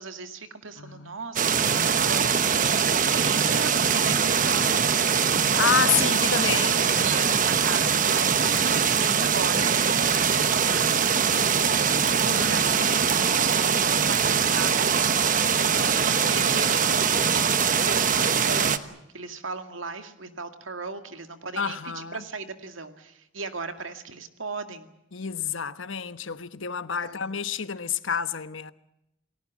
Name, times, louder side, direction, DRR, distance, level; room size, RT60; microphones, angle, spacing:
voice 1, 0.0-5.1 6.7-13.8 14.1-17.2 17.8-24.9 27.0-27.3, right 4 dB, 85° right, 2.2 m, -37 dB
voice 2, 0.8-1.2 5.6-7.3 12.2-13.4 21.6-22.2 25.1-28.7, left 7 dB, 75° left, 1.1 m, -29 dB
sound 1, 1.4-18.8, right 6 dB, 40° right, 1.1 m, -22 dB
29.5 x 19.0 x 7.4 m
head